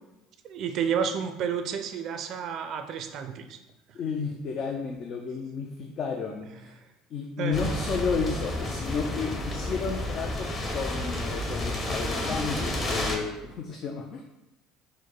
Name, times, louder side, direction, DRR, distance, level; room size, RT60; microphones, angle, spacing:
voice 1, 0.4-3.6 7.4-7.7, right 7 dB, 55° right, 7 dB, 0.5 m, -30 dB
voice 2, 3.9-6.7 7.1-14.2, left 5 dB, 50° left, 1 dB, 0.5 m, -32 dB
sound 1, 7.5-13.2, left 1 dB, 35° left, 1.0 m, -31 dB
4.5 x 2.1 x 4.5 m, 0.96 s
hypercardioid pair, 80°, 0 cm